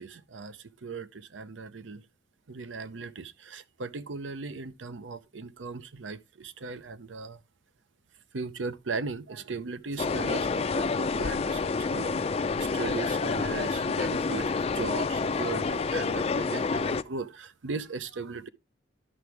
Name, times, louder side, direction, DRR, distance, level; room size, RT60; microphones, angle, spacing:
voice 1, 0.0-2.0 2.5-7.4 8.3-18.5, right 4 dB, 90° right, 0.7 m, -38 dB
sound 1, 10.0-17.0, left 4 dB, 35° left, 0.4 m, -28 dB
11.0 x 6.0 x 3.4 m
head